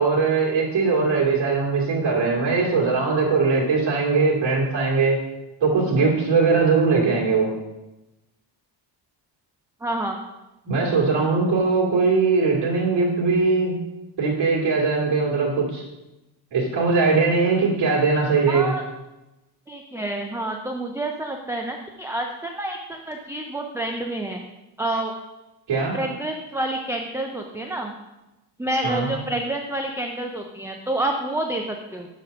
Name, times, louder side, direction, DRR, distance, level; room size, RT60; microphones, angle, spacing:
voice 1, 0.0-5.2 5.6-7.5 10.6-13.7 14.2-15.8 16.5-18.7 25.7-25.9 28.8-29.1, right 4 dB, 65° right, -3 dB, 2.2 m, -20 dB
voice 2, 9.8-10.2 18.5-18.8 19.7-24.4 24.8-25.1 25.9-27.9 28.6-32.1, right 1 dB, 5° right, 2 dB, 0.3 m, -28 dB
7.0 x 4.1 x 5.2 m, 0.99 s
cardioid pair, 130°, 45 cm